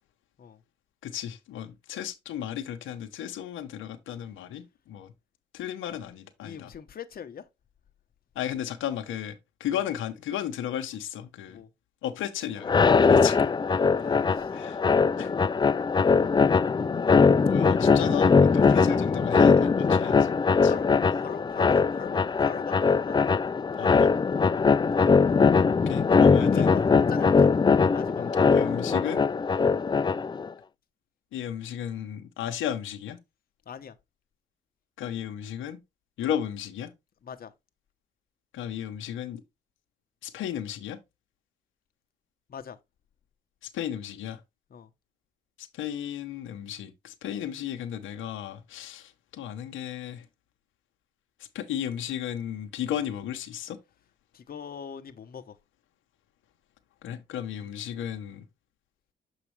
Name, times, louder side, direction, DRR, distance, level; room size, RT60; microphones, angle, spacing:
voice 1, 1.0-5.1 5.5-6.7 8.3-11.6 12.0-13.4 13.7-13.8 14.5-14.8 15.2-15.3 17.3-20.3 20.6-20.7 23.8-24.1 25.9-26.7 28.2-29.2 31.3-33.2 35.0-35.8 36.2-36.9 38.5-39.4 40.2-41.0 43.6-44.4 45.6-50.3 51.5-53.8 57.0-58.4, left 10 dB, 85° left, 0.9 m, -34 dB
voice 2, 6.4-7.4 9.7-9.8 11.5-11.7 14.0-14.5 18.7-18.8 20.6-20.9 21.2-23.2 24.4-24.6 26.3-27.5 27.8-28.4 29.5-29.7 33.7-33.9 37.2-37.5 42.5-42.8 44.7-44.9 54.3-55.6, left 7 dB, 50° left, 0.9 m, -41 dB
sound 1, 12.6-30.5, left 5 dB, 20° left, 0.4 m, -21 dB
7.1 x 4.9 x 3.2 m
cardioid pair, 70°, 20 cm